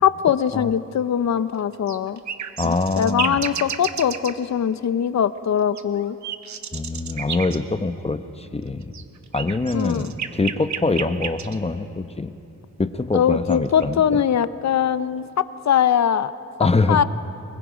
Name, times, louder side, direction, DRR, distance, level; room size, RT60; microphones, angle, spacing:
voice 1, 0.0-2.2 2.6-6.2 9.7-10.1 13.1-16.3 16.9-17.0, left 8 dB, 65° left, 13 dB, 0.8 m, -21 dB
sound 1, 1.7-4.3 5.8-7.6 8.8-11.6 13.2-13.9, right 7 dB, 70° right, 1.1 m, -30 dB
voice 2, 2.6-3.4 6.7-8.9 9.3-12.3 12.8-14.2 16.6-17.0, left 3 dB, 20° left, 9 dB, 0.9 m, -24 dB
28.5 x 21.5 x 5.2 m, 2.9 s
cardioid pair, 100°, 30 cm